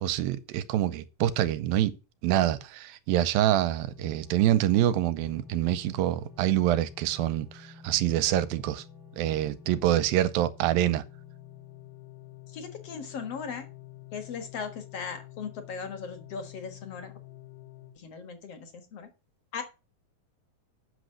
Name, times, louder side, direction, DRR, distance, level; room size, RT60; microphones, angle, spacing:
voice 1, 0.0-2.0 2.2-8.8 9.2-11.0, right 12 dB, 85° right, 2.5 m, -26 dB
sound 1, 3.9-17.9, left 10 dB, 80° left, 4.9 m, -49 dB
voice 2, 12.5-13.7 14.1-17.1 18.0-19.1 19.5-19.6, left 6 dB, 55° left, 2.0 m, -38 dB
8.5 x 6.4 x 6.3 m
omnidirectional pair, 4.2 m